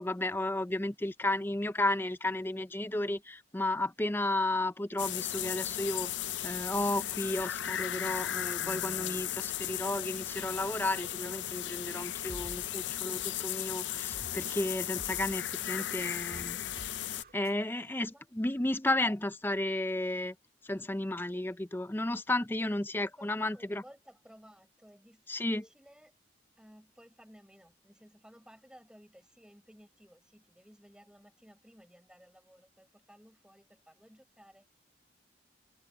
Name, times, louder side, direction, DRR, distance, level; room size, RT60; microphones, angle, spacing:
voice 1, 0.0-6.1 6.4-16.6 17.3-20.3 20.7-23.8 25.3-25.6, left 1 dB, 10° left, 0.5 m, -33 dB
sound 1, 5.0-17.2, left 12 dB, 70° left, 0.6 m, -36 dB
sound 2, 12.2-17.6, right 1 dB, 50° right, 2.3 m, -50 dB
voice 2, 22.9-26.1 26.6-34.7, equal, 5° right, 7.1 m, -57 dB
head